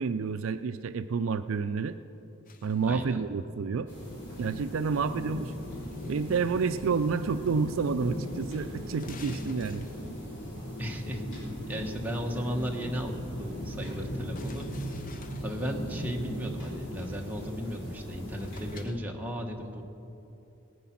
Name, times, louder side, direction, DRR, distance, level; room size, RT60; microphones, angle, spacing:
voice 1, 0.0-2.0 2.6-3.9 4.4-5.5 6.1-9.9, right 5 dB, 65° right, 11 dB, 0.4 m, -29 dB
sound 1, 2.5-3.1 5.5-6.5 7.5-7.9 8.2-8.3 8.9-10.3 14.3-15.8 17.9-18.0 18.4-19.0, left 4 dB, 40° left, 0.7 m, -50 dB
voice 2, 2.8-3.2 10.8-11.2 11.7-14.6 15.4-19.8, equal, 10° right, 0 dB, 1.2 m, -35 dB
sound 2, 3.9-18.8, equal, 55° left, 3.9 m, -38 dB
19.0 x 9.3 x 5.9 m, 2.9 s
head